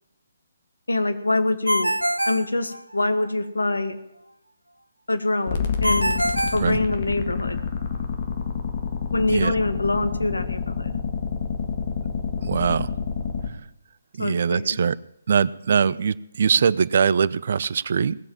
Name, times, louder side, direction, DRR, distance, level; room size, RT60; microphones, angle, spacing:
voice 1, 0.9-2.0 2.3-4.0 5.1-6.2 6.5-7.6 9.1-11.0 14.2-14.8, left 2 dB, 75° left, 8 dB, 1.6 m, -25 dB
Ringtone, 1.7-3.3 5.8-7.5, equal, 90° right, 0.6 m, -25 dB
sound 1, 5.5-13.5, left 6 dB, 35° left, 1.8 m, -28 dB
voice 2, 12.4-12.9 14.2-15.0 15.3-18.2, right 6 dB, 45° right, 20 dB, 0.5 m, -22 dB
18.5 x 7.6 x 7.3 m, 0.80 s
figure-of-eight pair, 140°, 0 cm